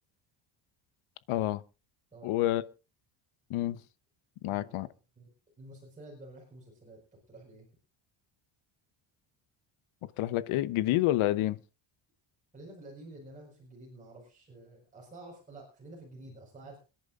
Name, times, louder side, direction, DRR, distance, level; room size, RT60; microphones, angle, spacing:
voice 1, 1.3-1.6 2.2-2.6 3.5-3.8 4.4-4.9 10.2-11.6, left 15 dB, 85° left, 1.0 m, -28 dB
voice 2, 2.1-2.6 4.5-5.3 5.6-7.6 12.5-16.8, right 2 dB, 15° right, 5.0 m, -50 dB
27.0 x 10.5 x 2.5 m
cardioid pair, 170°, 48 cm